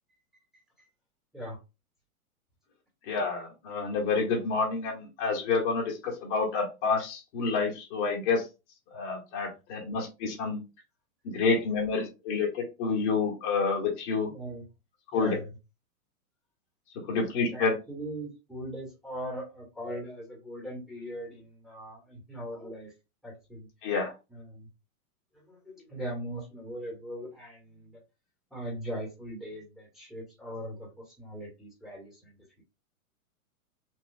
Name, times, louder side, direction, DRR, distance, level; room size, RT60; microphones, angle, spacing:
voice 1, 3.1-8.4 8.9-10.6 11.2-14.3 15.1-15.3 17.1-17.7 23.8-24.1, left 4 dB, 50° left, -1 dB, 1.8 m, -28 dB
voice 2, 14.2-14.6 15.1-15.5 17.5-22.9 23.2-23.7 24.3-24.7 25.3-28.0 28.5-32.6, equal, ahead, -4 dB, 1.7 m, -40 dB
4.6 x 2.8 x 2.3 m, 0.27 s
hypercardioid pair, 130°, 44 cm